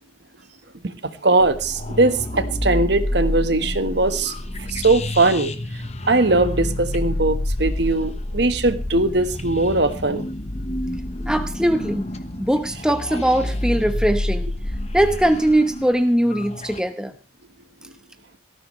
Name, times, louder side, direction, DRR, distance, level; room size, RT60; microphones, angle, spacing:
voice 1, 1.2-4.3 4.7-5.5 6.1-10.3, right 2 dB, 60° right, 10 dB, 1.4 m, -20 dB
sound 1, 1.4-16.8, left 1 dB, 35° left, 1.1 m, -28 dB
voice 2, 11.3-12.1 12.4-14.5 14.9-17.1, right 1 dB, 5° right, 8 dB, 1.0 m, -20 dB
18.0 x 14.5 x 3.2 m, 0.31 s
head